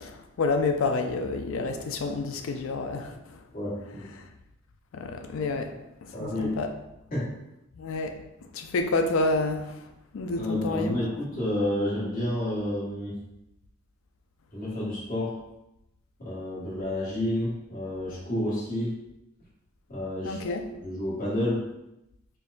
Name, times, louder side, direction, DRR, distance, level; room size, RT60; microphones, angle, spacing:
voice 1, 0.0-3.4 4.2-4.3 4.9-6.7 7.8-8.2 8.5-9.7 10.1-11.0 20.2-20.6, left 3 dB, 70° left, 6 dB, 0.4 m, -29 dB
voice 2, 3.5-4.1 6.1-6.5 7.1-7.3 10.4-13.2 14.5-15.3 16.2-18.9 19.9-20.4 20.8-21.6, left 1 dB, 45° left, -9 dB, 1.3 m, -30 dB
4.4 x 2.2 x 2.5 m, 0.87 s
head